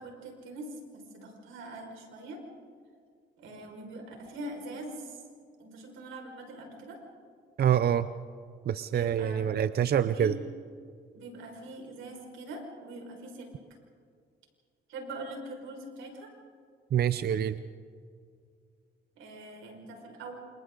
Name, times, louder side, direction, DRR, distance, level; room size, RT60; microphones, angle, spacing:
voice 1, 0.0-2.4 3.4-5.2 5.6-7.0 8.9-9.5 10.1-10.4 11.1-13.5 14.9-16.3 19.2-20.3, right 2 dB, 85° right, 1 dB, 5.4 m, -43 dB
voice 2, 7.6-8.1 8.7-10.4 16.9-17.6, right 9 dB, 55° right, 13 dB, 0.7 m, -26 dB
28.0 x 28.0 x 3.9 m, 2.2 s
cardioid pair, 90°, 20 cm